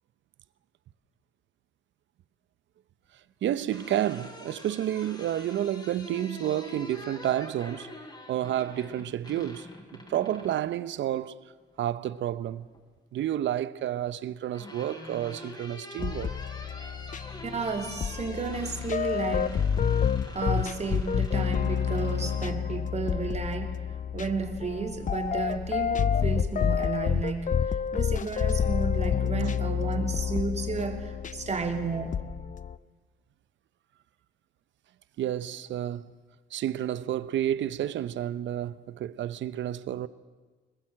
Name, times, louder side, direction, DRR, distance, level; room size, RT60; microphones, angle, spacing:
sound 1, 3.4-10.7 12.1-12.8 14.0-22.6, left 1 dB, 20° left, 3.9 m, -46 dB
voice 1, 3.4-7.9 8.3-9.7 10.1-11.4 11.8-12.7 13.1-16.3 29.4-29.5 35.2-36.1 36.5-40.1, right 11 dB, 70° right, 0.8 m, -30 dB
sound 2, 16.0-32.7, left 7 dB, 40° left, 0.7 m, -29 dB
voice 2, 17.4-19.7 20.3-32.3, right 4 dB, 35° right, 2.9 m, -33 dB
21.5 x 20.5 x 7.6 m
cardioid pair, 90°, 20 cm